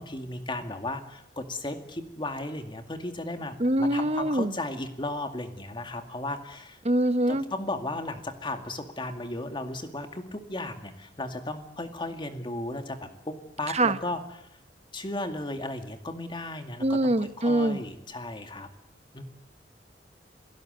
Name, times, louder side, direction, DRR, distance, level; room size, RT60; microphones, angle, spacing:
voice 1, 0.0-6.8 7.3-14.5 14.9-18.7 19.1-19.2, left 2 dB, 30° left, 6 dB, 2.2 m, -35 dB
voice 2, 3.6-4.5 6.8-7.4 13.7-13.9 16.8-17.8, right 1 dB, 40° right, 11 dB, 1.2 m, -24 dB
27.0 x 17.5 x 8.1 m, 0.84 s
head